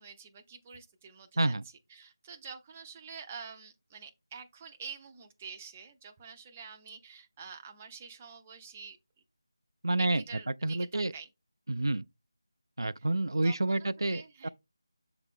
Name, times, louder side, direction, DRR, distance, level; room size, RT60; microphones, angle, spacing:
voice 1, 0.0-1.5 1.9-9.0 10.0-11.3 13.0-13.1 13.4-14.5, right 6 dB, 20° right, 0.5 m, -47 dB
voice 2, 9.8-10.2 10.6-11.1 11.7-12.0 12.8-14.5, right 2 dB, 75° right, 0.3 m, -29 dB
7.2 x 3.9 x 3.6 m
figure-of-eight pair, 165°, 2 cm